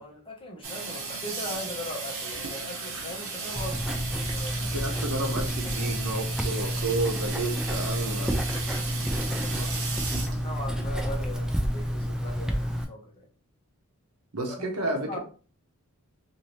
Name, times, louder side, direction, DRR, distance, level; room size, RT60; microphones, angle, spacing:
voice 1, 0.0-4.7 8.1-13.3 14.5-15.2, left 1 dB, 25° left, -1 dB, 0.9 m, -40 dB
Water tap faucet / Sink (filling or washing), 0.6-11.5, right 4 dB, 60° right, 0.8 m, -36 dB
Writing, 3.5-12.8, equal, 5° right, 0.3 m, -30 dB
voice 2, 4.6-8.4 14.3-15.2, right 2 dB, 85° right, 3 dB, 0.9 m, -31 dB
2.7 x 2.7 x 3.1 m, 0.37 s
head